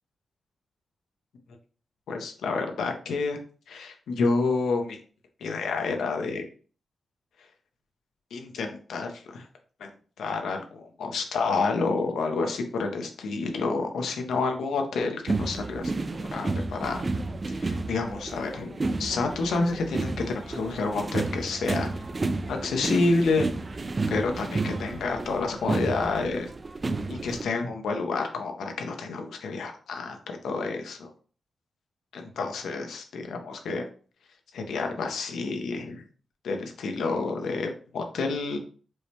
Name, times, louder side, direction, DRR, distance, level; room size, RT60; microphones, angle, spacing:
voice 1, 2.1-3.4 3.7-5.0 5.4-6.5 8.3-9.5 9.8-9.9 10.2-17.1 17.5-21.9 22.5-23.5 24.1-26.5 27.1-30.2 30.4-31.1 32.1-33.9 34.5-36.0 36.4-38.6, left 3 dB, 90° left, 4 dB, 0.6 m, -29 dB
sound 1, 15.3-27.4, right 3 dB, 40° right, 0.3 m, -31 dB
4.6 x 2.1 x 2.8 m, 0.41 s
cardioid pair, 65°, 0 cm